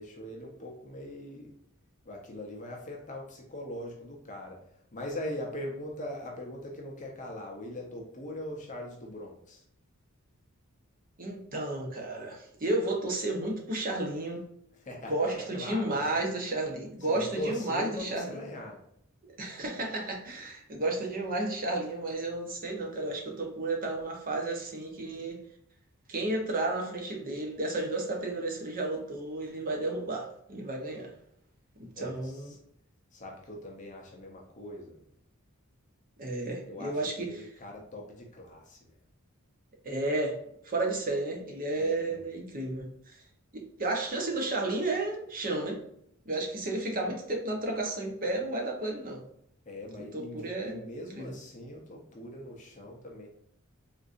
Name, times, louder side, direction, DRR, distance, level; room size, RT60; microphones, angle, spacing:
voice 1, 0.0-1.5 2.0-4.6 4.9-9.6 14.8-16.2 17.0-18.8 31.9-32.6 33.1-35.0 36.7-38.9 41.8-42.2 49.7-53.3, left 1 dB, 35° left, -1 dB, 0.6 m, -41 dB
voice 2, 11.2-14.5 15.1-18.4 19.4-25.4 26.1-31.1 31.8-32.5 36.2-37.4 39.8-40.4 40.6-43.2 43.5-45.8 46.3-49.2 50.0-50.8 51.1-51.3, right 2 dB, 40° right, 1 dB, 0.7 m, -32 dB
3.7 x 2.6 x 2.5 m, 0.72 s
head